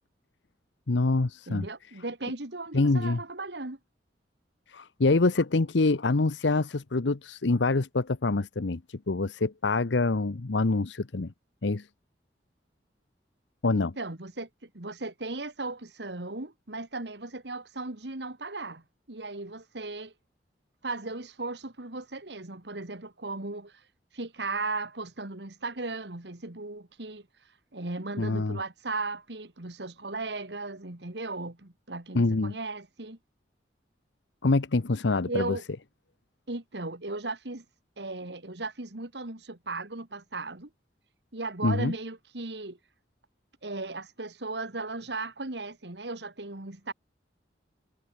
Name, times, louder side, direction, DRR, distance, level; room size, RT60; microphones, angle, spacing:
voice 1, 0.9-1.7 2.7-3.2 4.7-11.3 11.6-11.9 13.6-13.9 28.2-28.6 32.1-32.5 34.4-35.6 41.6-41.9, left 3 dB, 90° left, 0.9 m, -25 dB
voice 2, 1.5-3.8 13.7-20.1 20.8-23.7 24.1-27.3 27.7-33.2 35.2-35.6 36.5-37.6 38.0-40.7 41.3-42.8 43.6-46.9, right 3 dB, 70° right, 2.2 m, -36 dB
head